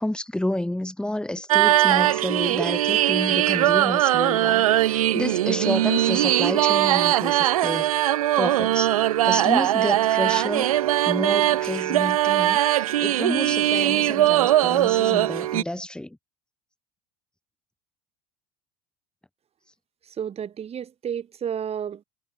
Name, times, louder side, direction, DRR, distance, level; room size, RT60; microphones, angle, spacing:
voice 1, 0.0-9.0 9.2-10.7 11.0-16.2, left 1 dB, 5° left, 3.8 m, -30 dB
sound 1, 1.5-15.6, right 13 dB, 85° right, 1.5 m, -21 dB
voice 2, 20.2-22.0, right 8 dB, 35° right, 2.8 m, -31 dB
hypercardioid pair, 85°, 18 cm